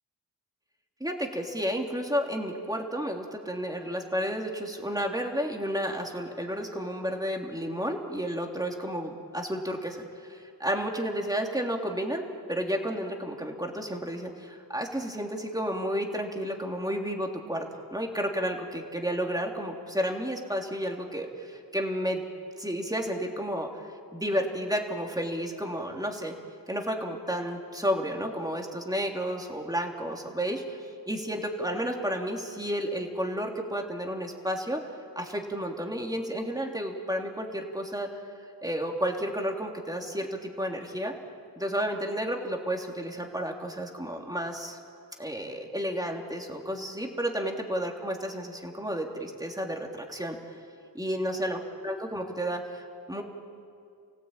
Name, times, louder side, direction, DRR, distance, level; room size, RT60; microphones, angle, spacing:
voice 1, 1.0-22.2 22.6-26.3 26.7-30.8 31.1-34.8 35.1-38.1 38.6-41.1 41.6-44.8 45.2-50.4 50.9-53.2, equal, 10° right, 1 dB, 3.2 m, -32 dB
29.5 x 17.5 x 9.0 m, 2.4 s
wide cardioid pair, 70°, 37 cm